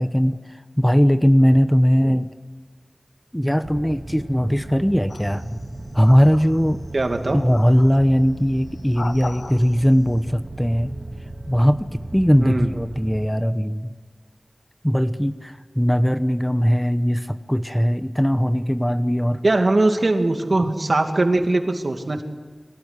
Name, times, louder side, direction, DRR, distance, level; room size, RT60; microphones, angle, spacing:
voice 1, 0.0-2.3 3.3-5.6 5.9-6.8 7.3-10.9 11.5-13.9 14.8-19.4, equal, 5° left, 10 dB, 1.0 m, -19 dB
sound 1, 3.6-13.3, right 1 dB, 50° right, 2.7 m, -36 dB
sound 2, 5.1-5.6 6.0-6.9 7.5-8.1 8.7-9.9, left 3 dB, 90° left, 0.9 m, -37 dB
voice 2, 6.9-7.4 12.4-12.7 19.4-22.2, right 2 dB, 65° right, 4 dB, 2.5 m, -20 dB
24.0 x 17.5 x 9.9 m, 1.4 s
wide cardioid pair, 50°, 0 cm